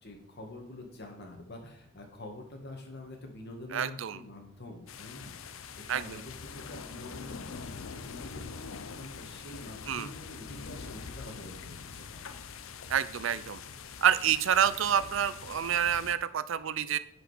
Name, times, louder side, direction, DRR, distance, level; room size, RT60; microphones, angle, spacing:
voice 1, 0.0-12.3, left 1 dB, 55° left, 3 dB, 1.8 m, -46 dB
voice 2, 3.7-4.2 5.9-6.2 9.9-10.1 12.9-13.6 14.0-17.0, right 9 dB, 65° right, 15 dB, 0.5 m, -28 dB
sound 1, 4.9-16.2, left 5 dB, 80° left, 0.6 m, -44 dB
10.5 x 5.1 x 5.0 m, 0.71 s
head